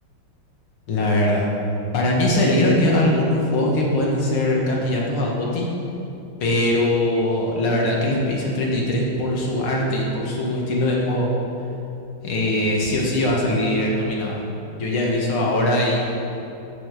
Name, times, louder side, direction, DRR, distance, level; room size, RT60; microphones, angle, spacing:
voice 1, 0.9-1.5 1.9-5.7 6.4-11.3 12.2-14.4 14.7-16.1, left 1 dB, 75° left, -3 dB, 2.6 m, -21 dB
9.1 x 7.9 x 6.6 m, 2.9 s
omnidirectional pair, 2.4 m